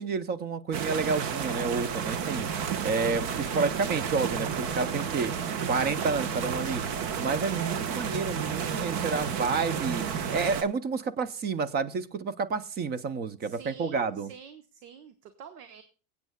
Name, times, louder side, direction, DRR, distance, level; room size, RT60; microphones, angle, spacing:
voice 1, 0.0-2.5 2.8-5.3 5.7-6.8 7.2-10.1 10.3-14.3, right 4 dB, 20° right, 17 dB, 0.5 m, -30 dB
sound 1, 0.7-10.6, right 7 dB, 50° right, 1.1 m, -31 dB
Bowed string instrument, 3.1-7.9, right 2 dB, 70° right, 1.8 m, -50 dB
voice 2, 3.5-4.0 7.5-7.9 13.4-15.8, right 7 dB, 85° right, 9 dB, 1.2 m, -47 dB
25.0 x 8.3 x 2.2 m, 0.35 s
supercardioid pair, 135°, 46 cm